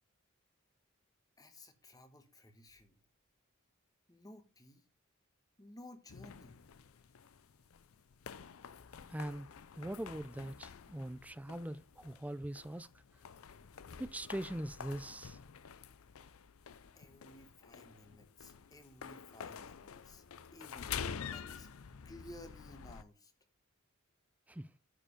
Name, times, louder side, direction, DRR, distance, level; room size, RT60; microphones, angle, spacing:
voice 1, 1.4-3.0 4.1-4.8 5.6-6.6 16.9-20.2 20.5-21.7 22.0-23.3, left 1 dB, 15° left, 1.3 m, -56 dB
sound 1, 6.1-23.0, left 7 dB, 70° left, 0.5 m, -48 dB
voice 2, 9.1-9.5 9.8-12.9 14.0-15.4 24.5-24.7, right 1 dB, 5° right, 0.4 m, -42 dB
9.0 x 5.0 x 5.1 m
head